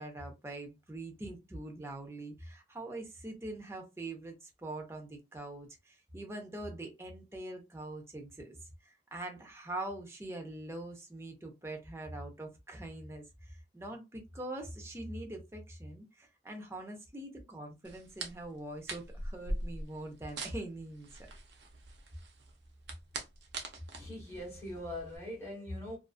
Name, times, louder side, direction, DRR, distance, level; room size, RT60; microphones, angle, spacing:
voice 1, 0.0-8.6 8.8-21.1, right 1 dB, 15° right, 0.5 m, -43 dB
sound 1, 17.8-25.2, right 2 dB, 65° right, 0.5 m, -43 dB
voice 2, 23.9-26.0, left 1 dB, 15° left, 1.2 m, -41 dB
2.5 x 2.3 x 2.3 m
head